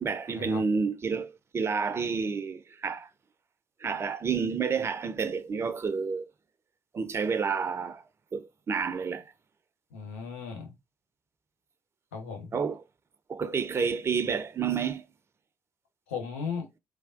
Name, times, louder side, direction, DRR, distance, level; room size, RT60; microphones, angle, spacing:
voice 1, 0.0-3.1 3.8-6.3 6.9-8.0 8.3-9.2 12.5-12.8 13.3-15.1, right 5 dB, 35° right, 0.4 m, -30 dB
voice 2, 9.9-10.7 12.1-12.5 16.1-16.7, left 6 dB, 80° left, 0.8 m, -36 dB
3.2 x 2.2 x 2.5 m
figure-of-eight pair, 40°, 7 cm